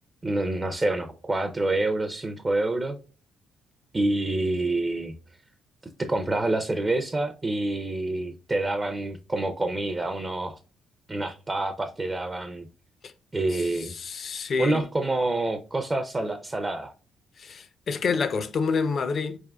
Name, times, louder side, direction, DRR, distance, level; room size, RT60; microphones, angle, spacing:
voice 1, 0.2-3.0 3.9-5.1 6.0-10.6 11.1-12.7 13.3-14.0 14.6-16.9, right 2 dB, 20° right, 0.5 m, -27 dB
voice 2, 13.5-14.8 17.4-19.4, left 5 dB, 50° left, 0.6 m, -28 dB
4.6 x 3.5 x 2.2 m
cardioid pair, 90°, 0 cm